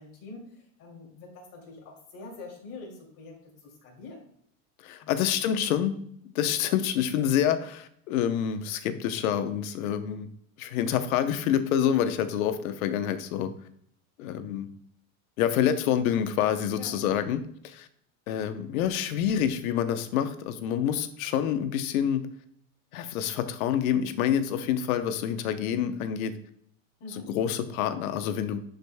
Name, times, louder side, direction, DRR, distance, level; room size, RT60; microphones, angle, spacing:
voice 1, 0.0-4.3 5.0-5.4 16.7-17.0 27.0-27.3, left 3 dB, 35° left, -3 dB, 2.5 m, -45 dB
voice 2, 4.8-6.0 6.2-10.3 10.6-13.5 14.2-14.7 15.4-17.9 18.3-22.2 22.9-26.3 27.3-28.6, left 9 dB, 85° left, 10 dB, 0.9 m, -27 dB
10.5 x 5.2 x 2.2 m, 0.68 s
supercardioid pair, 175°, 41 cm